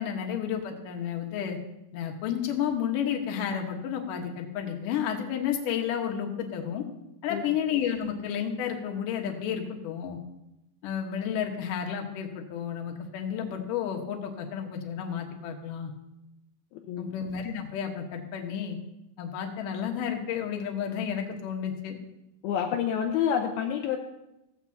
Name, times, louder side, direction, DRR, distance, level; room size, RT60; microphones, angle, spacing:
voice 1, 0.0-1.6 1.9-6.9 7.2-10.2 10.8-15.9 17.0-18.8 19.2-22.0, left 8 dB, 65° left, 2 dB, 2.5 m, -31 dB
voice 2, 16.7-17.1 22.4-24.0, left 8 dB, 80° left, 2 dB, 2.5 m, -28 dB
16.5 x 15.0 x 2.8 m, 0.92 s
omnidirectional pair, 4.8 m